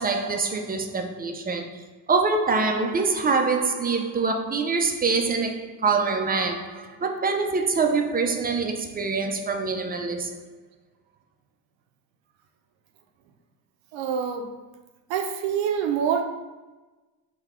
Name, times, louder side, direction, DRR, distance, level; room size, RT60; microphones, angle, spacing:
voice 1, 0.0-1.7 2.1-10.4, right 4 dB, 20° right, 0.4 m, -25 dB
voice 2, 13.9-14.5 15.1-16.2, right 7 dB, 70° right, 0.7 m, -25 dB
3.9 x 2.3 x 4.3 m
supercardioid pair, 75°, 47 cm